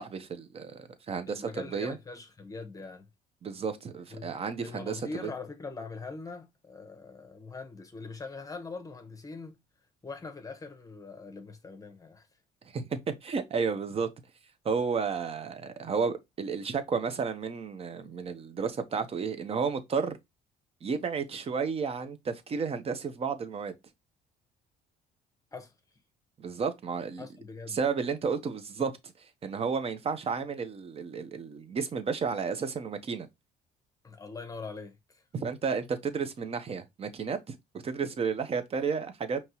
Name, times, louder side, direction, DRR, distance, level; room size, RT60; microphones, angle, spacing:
voice 1, 0.0-2.0 3.4-5.3 12.7-14.1 14.6-20.2 20.8-23.7 26.4-27.3 27.7-28.9 29.4-33.3 35.3-37.5 37.8-39.4, right 5 dB, 35° right, 0.8 m, -32 dB
voice 2, 1.3-3.1 4.1-4.3 4.6-9.6 10.0-12.3 25.5-25.7 27.2-27.8 34.0-35.2, left 4 dB, 20° left, 0.9 m, -42 dB
5.2 x 2.9 x 2.9 m
cardioid pair, 110°, 17 cm